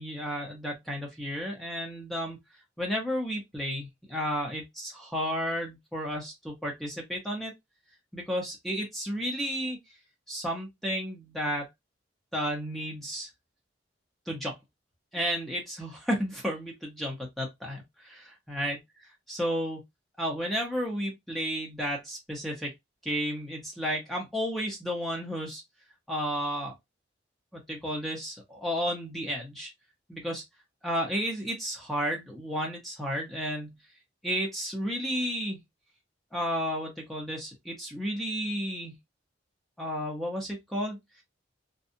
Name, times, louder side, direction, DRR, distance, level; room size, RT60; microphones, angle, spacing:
voice 1, 0.0-2.4 2.8-7.5 8.1-9.8 10.3-11.7 12.3-13.3 14.3-14.6 15.1-18.8 19.3-19.8 20.2-22.7 23.0-25.6 26.1-26.7 27.5-29.7 30.1-30.4 30.8-33.7 34.2-35.6 36.3-38.9 39.8-41.0, equal, ahead, 0.7 m, -32 dB
2.6 x 2.2 x 2.6 m
head